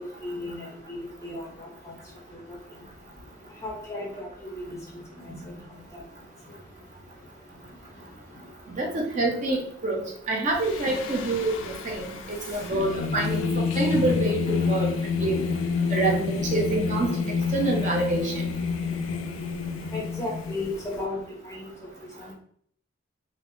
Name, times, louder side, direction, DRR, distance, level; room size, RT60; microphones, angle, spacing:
voice 1, 0.0-1.9 2.5-2.6 3.6-4.8 5.2-5.6 5.9-6.0 12.5-12.6 19.9-21.7 22.2-22.3, left 2 dB, 15° left, -2 dB, 0.5 m, -35 dB
voice 2, 8.8-15.5 15.9-17.3 17.5-18.5, right 2 dB, 35° right, 1 dB, 0.4 m, -27 dB
Singing, 10.6-21.0, left 5 dB, 75° left, 0.3 m, -29 dB
2.9 x 2.0 x 2.6 m, 0.62 s
head